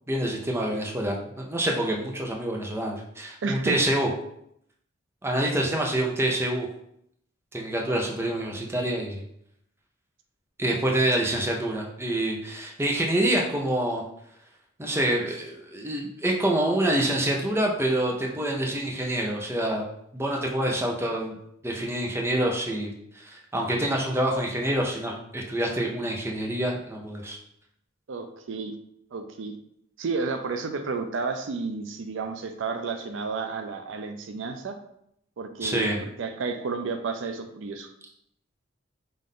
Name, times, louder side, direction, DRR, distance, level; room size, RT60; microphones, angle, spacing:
voice 1, 0.1-4.1 5.2-6.7 7.5-9.2 10.6-14.0 14.8-19.8 20.1-21.4 21.6-27.4 35.6-36.0, right 1 dB, 10° right, 0 dB, 0.6 m, -26 dB
voice 2, 3.4-3.8 28.1-28.7 29.1-29.5 30.0-34.8 35.4-37.9, right 4 dB, 70° right, 7 dB, 0.4 m, -31 dB
5.5 x 2.5 x 3.7 m, 0.74 s
head